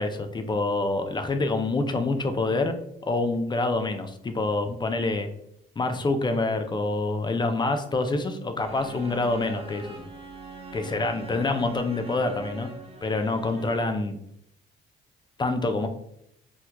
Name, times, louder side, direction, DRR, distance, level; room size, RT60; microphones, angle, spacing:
voice 1, 0.0-2.7 3.1-5.3 5.8-10.0 10.7-12.7 13.0-14.2 15.4-15.9, left 2 dB, 25° left, 7 dB, 0.4 m, -26 dB
sound 1, 8.6-14.0, right 2 dB, 30° right, 0.6 m, -41 dB
4.3 x 2.3 x 2.2 m, 0.75 s
cardioid pair, 90°, 20 cm